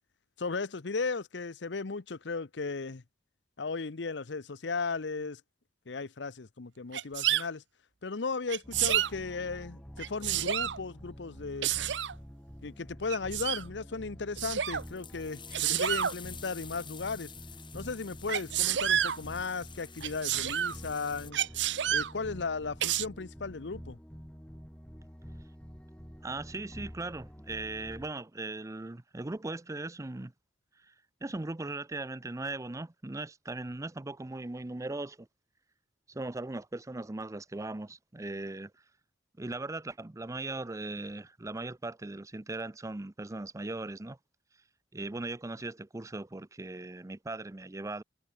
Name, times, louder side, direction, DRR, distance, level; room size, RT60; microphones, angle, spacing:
voice 1, 0.4-3.0 3.6-5.4 5.9-7.6 8.0-11.7 12.6-17.3 17.7-21.4 21.9-24.0, left 4 dB, 75° left, 0.8 m, -36 dB
Sneeze, 6.9-7.4 8.5-9.1 10.0-10.8 11.6-12.1 13.1-13.6 14.4-14.8 15.5-16.1 18.3-19.2 20.0-20.8 21.3-22.1 22.8-23.0, right 10 dB, 80° right, 0.8 m, -29 dB
sound 1, 8.6-28.1, equal, 5° left, 3.0 m, -48 dB
sound 2, 14.7-21.3, left 7 dB, 25° left, 3.6 m, -49 dB
voice 2, 26.2-30.3 30.8-30.9 31.2-35.3 36.1-38.7 39.4-44.2 44.9-48.0, right 2 dB, 20° right, 0.5 m, -38 dB
head